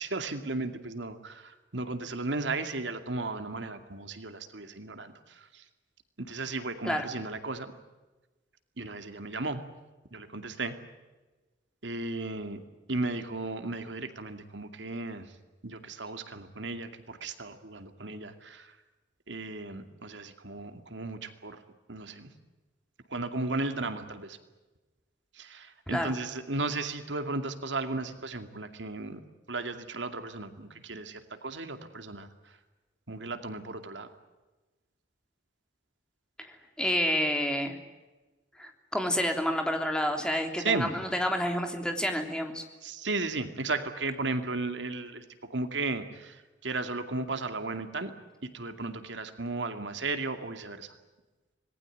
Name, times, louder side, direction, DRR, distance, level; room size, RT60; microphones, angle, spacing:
voice 1, 0.0-5.6 6.2-7.7 8.8-9.6 10.1-10.8 11.8-12.6 12.9-15.3 15.6-18.8 19.3-21.6 21.9-22.3 23.1-24.4 25.3-29.2 29.5-32.6 33.1-34.1 40.6-40.9 42.8-45.2 45.5-48.1 48.4-50.9, right 3 dB, 80° right, 8 dB, 2.4 m, -35 dB
voice 2, 36.4-37.8 38.6-42.6, equal, 5° left, 4 dB, 3.3 m, -29 dB
26.5 x 19.5 x 9.2 m, 1.2 s
head